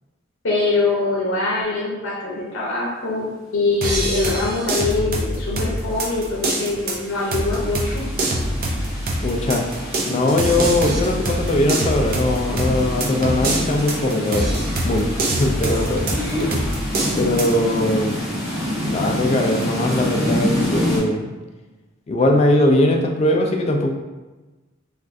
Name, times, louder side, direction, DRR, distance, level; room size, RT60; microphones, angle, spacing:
voice 1, 0.4-8.1 16.1-16.5, left 3 dB, 90° left, -4 dB, 0.7 m, -23 dB
sound 1, 3.8-17.5, right 1 dB, 45° right, 0.5 m, -25 dB
sound 2, 5.0-21.0, left 1 dB, ahead, 1.0 m, -28 dB
voice 2, 9.2-9.7 10.0-14.5 14.8-16.1 17.2-18.3 18.9-21.3 22.1-23.9, left 1 dB, 30° left, 2 dB, 0.3 m, -20 dB
3.4 x 2.3 x 2.5 m, 1.2 s
head